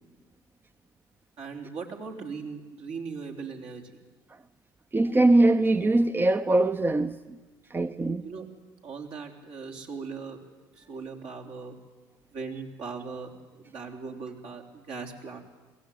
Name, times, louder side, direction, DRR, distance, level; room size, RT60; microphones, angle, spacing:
voice 1, 1.4-3.8 8.2-8.5 8.8-10.4 10.8-11.7 12.3-15.4, right 5 dB, 65° right, 3.7 m, -39 dB
voice 2, 4.9-7.4 7.7-8.2, right 2 dB, 20° right, 0.7 m, -22 dB
22.0 x 16.5 x 9.3 m
hypercardioid pair, 65°, 10 cm